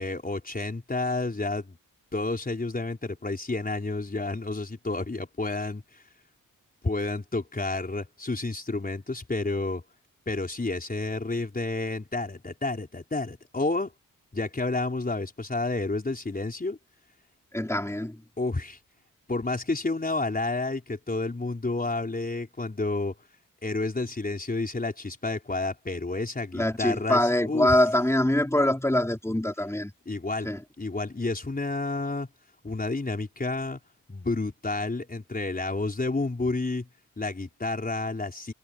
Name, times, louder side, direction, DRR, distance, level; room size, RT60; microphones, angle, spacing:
voice 1, 0.0-1.8 2.1-6.0 6.8-9.8 10.3-13.9 14.3-16.8 18.4-18.8 19.3-23.1 23.6-27.8 30.0-30.5 30.8-32.3 32.6-33.8 34.1-36.9 37.2-38.5, left 2 dB, 25° left, 4.8 m, -30 dB
voice 2, 17.5-18.2 26.5-29.9 30.4-30.6, left 1 dB, 10° left, 4.8 m, -24 dB
cardioid pair, 90°, 33 cm